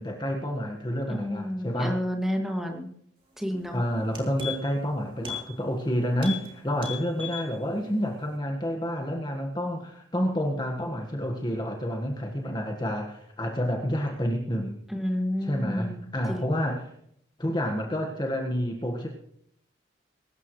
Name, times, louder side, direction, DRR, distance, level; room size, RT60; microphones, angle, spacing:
voice 1, 0.0-2.0 3.7-14.8 15.4-16.9 17.4-19.1, equal, 20° left, 1 dB, 1.6 m, -29 dB
voice 2, 1.1-2.9 3.4-3.8 15.0-16.5, equal, ahead, 1 dB, 2.1 m, -30 dB
sound 1, 3.5-3.7 4.0-4.8 5.2-5.5 5.8-5.9 6.2-6.5 6.8-7.5 7.9-8.0, left 6 dB, 25° right, 3.0 m, -36 dB
23.0 x 13.0 x 3.2 m, 0.70 s
head